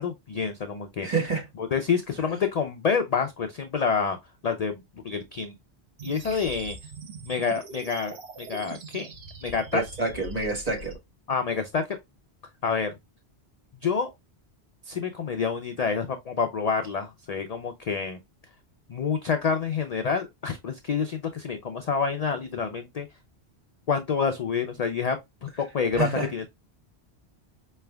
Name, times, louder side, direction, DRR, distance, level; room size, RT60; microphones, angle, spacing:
voice 1, 0.0-1.1 1.6-4.2 4.4-5.5 6.0-6.8 7.2-9.1 9.4-9.8 11.3-12.0 12.6-12.9 13.8-14.1 14.9-18.2 18.9-23.1 23.9-25.2 25.6-26.5, left 5 dB, 55° left, 0.4 m, -28 dB
voice 2, 1.0-1.5 2.2-2.3 6.3-6.4 9.7-11.0 25.9-26.3, right 3 dB, 40° right, 1.4 m, -28 dB
sound 1, 6.0-10.9, right 2 dB, 65° right, 1.1 m, -43 dB
4.9 x 3.3 x 2.2 m
omnidirectional pair, 1.1 m